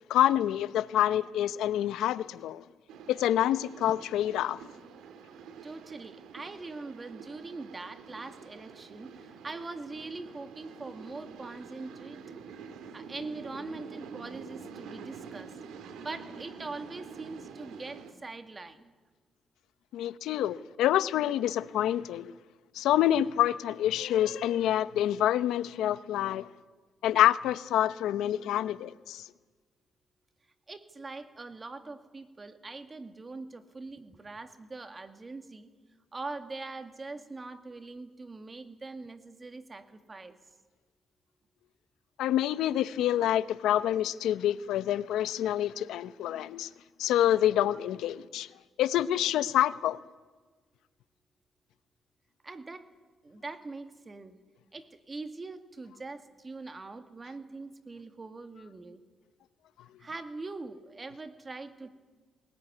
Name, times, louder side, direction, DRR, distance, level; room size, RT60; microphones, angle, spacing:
voice 1, 0.1-2.6 3.1-4.6 19.9-22.3 22.7-26.5 27.0-29.2 42.2-46.7 47.0-48.5 48.8-50.0, left 12 dB, 85° left, 0.8 m, -27 dB
sound 1, 2.9-18.1, right 6 dB, 85° right, 2.2 m, -47 dB
voice 2, 5.6-12.2 12.9-15.6 16.0-18.9 30.7-35.7 36.1-40.4 52.4-52.9 53.2-54.4 54.7-59.0 60.0-61.9, right 3 dB, 25° right, 2.1 m, -42 dB
20.5 x 19.0 x 9.6 m
cardioid pair, 90°, 0 cm